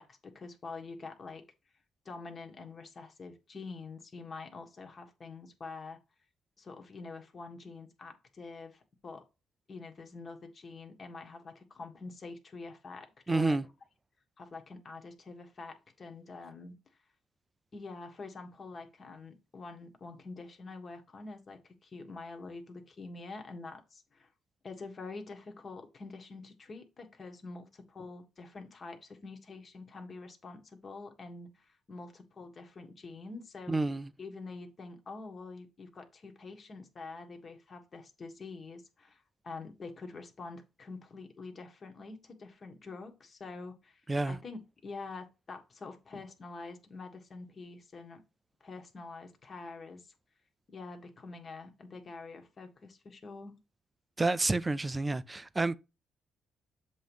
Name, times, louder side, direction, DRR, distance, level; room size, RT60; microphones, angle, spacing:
voice 1, 0.0-1.4 2.0-6.0 6.6-9.2 9.7-13.6 14.4-16.7 17.7-24.3 24.6-33.8 34.2-44.0 44.3-48.2 48.6-50.1 50.7-53.6, left 3 dB, 40° left, 1.5 m, -46 dB
voice 2, 13.3-13.6 33.7-34.1 44.1-44.4 54.2-55.7, right 2 dB, 20° right, 0.5 m, -29 dB
7.4 x 3.1 x 5.4 m
cardioid pair, 90°, 0 cm